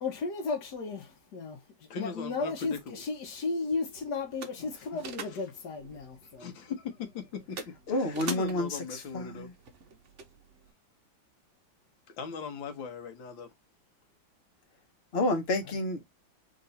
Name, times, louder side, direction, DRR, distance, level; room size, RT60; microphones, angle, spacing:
voice 1, 0.0-6.5, left 4 dB, 60° left, 1.5 m, -34 dB
voice 2, 1.9-3.0 6.4-7.6 7.9-9.5 12.2-13.5, left 6 dB, 80° left, 1.8 m, -39 dB
sound 1, 2.7-10.7, right 5 dB, 50° right, 0.9 m, -46 dB
voice 3, 7.9-9.5 15.1-16.0, left 1 dB, 40° left, 1.1 m, -30 dB
3.8 x 3.0 x 4.0 m
omnidirectional pair, 2.1 m